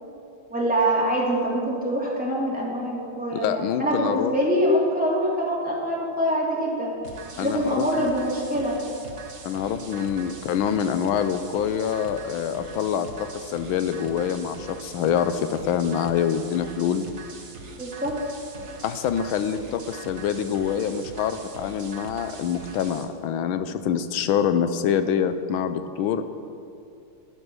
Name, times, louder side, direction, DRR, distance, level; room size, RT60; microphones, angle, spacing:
voice 1, 0.5-6.9 7.4-8.8 17.8-18.2, equal, 5° right, -6 dB, 2.8 m, -24 dB
voice 2, 3.3-4.3 7.4-7.8 9.4-17.0 18.8-26.3, left 8 dB, 75° left, 11 dB, 1.4 m, -25 dB
sound 1, 7.0-23.0, right 4 dB, 40° right, 1.2 m, -42 dB
12.0 x 11.0 x 6.2 m, 2.5 s
omnidirectional pair, 2.4 m